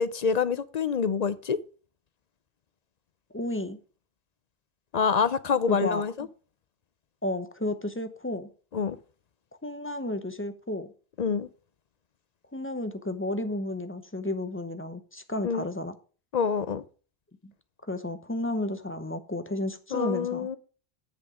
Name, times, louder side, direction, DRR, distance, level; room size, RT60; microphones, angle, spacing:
voice 1, 0.0-1.6 4.9-6.3 8.7-9.0 11.2-11.5 15.4-15.7 16.3-16.8 19.9-20.6, left 6 dB, 50° left, 0.5 m, -26 dB
voice 2, 3.3-3.8 5.7-6.0 7.2-8.5 9.6-10.9 12.5-15.9 17.9-20.5, left 1 dB, 15° left, 0.7 m, -32 dB
8.1 x 6.8 x 4.9 m
omnidirectional pair, 1.1 m